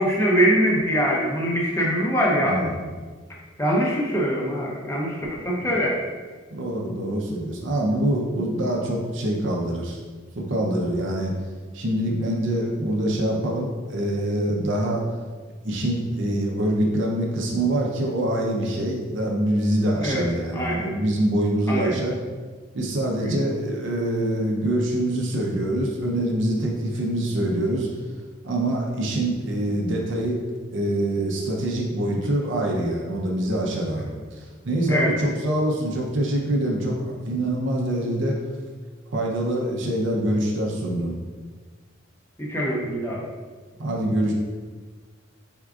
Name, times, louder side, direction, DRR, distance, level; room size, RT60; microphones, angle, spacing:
voice 1, 0.0-2.6 3.6-6.0 20.0-20.2 20.5-20.9 21.7-21.9 23.2-23.3 34.9-35.1 42.4-43.3, equal, 15° left, -3 dB, 0.7 m, -23 dB
voice 2, 2.4-2.8 5.6-5.7 6.5-10.0 10.5-11.3 11.7-15.0 15.6-22.2 22.7-27.9 28.4-30.4 30.7-38.4 39.1-41.2 43.8-44.3, right 1 dB, 65° right, -1 dB, 0.6 m, -25 dB
4.6 x 3.6 x 2.4 m, 1.5 s
head